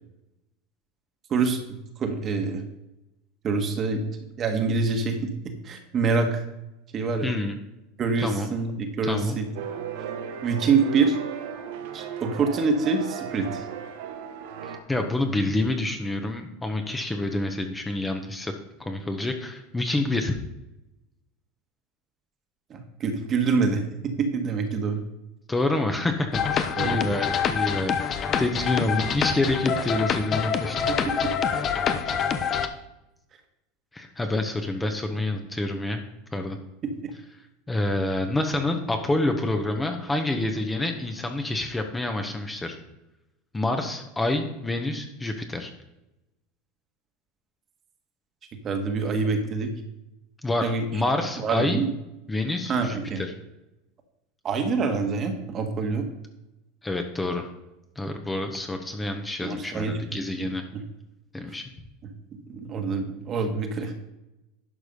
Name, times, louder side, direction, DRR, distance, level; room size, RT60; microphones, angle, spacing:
voice 1, 2.0-2.6 3.4-4.0 4.4-5.3 5.6-6.4 6.9-7.3 8.0-9.5 10.4-11.2 11.9-13.6 22.7-25.0 26.8-27.0 30.9-31.3 37.0-37.1 48.6-49.7 50.6-50.8 51.4-51.9 52.7-53.2 54.4-56.0 59.4-60.0 60.4-60.8 61.4-61.5 62.0-62.1 62.5-63.9, right 4 dB, 35° right, 5 dB, 1.6 m, -26 dB
voice 2, 7.2-7.6 8.2-8.5 9.0-9.4 14.6-18.5 18.8-20.4 25.5-30.9 33.9-36.0 36.3-36.6 37.7-42.8 43.5-45.7 50.4-51.8 52.3-53.3 56.8-57.5 57.9-60.6 61.3-61.6, left 2 dB, 10° left, 5 dB, 1.2 m, -27 dB
sound 1, 9.5-14.8, right 7 dB, 75° right, 1.1 m, -36 dB
sound 2, 26.3-32.7, left 7 dB, 35° left, 0.8 m, -26 dB
11.0 x 4.9 x 5.4 m, 0.93 s
supercardioid pair, 110°, 0 cm